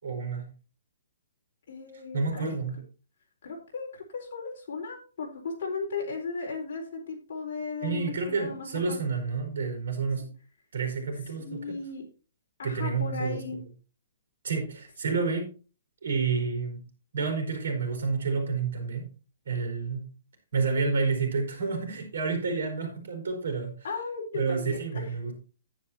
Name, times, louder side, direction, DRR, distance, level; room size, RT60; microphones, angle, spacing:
voice 1, 0.0-0.5 1.9-2.8 7.8-10.3 10.7-11.7 12.6-13.4 14.4-15.5 16.0-16.8 17.1-19.1 19.4-20.1 20.5-23.7 24.3-25.3, right 4 dB, 65° right, 4.6 m, -29 dB
voice 2, 1.7-2.6 3.4-9.0 11.4-12.0 12.6-13.6 23.8-25.1, left 4 dB, 45° left, 4.0 m, -36 dB
10.5 x 9.9 x 2.9 m
hypercardioid pair, 175°, 0 cm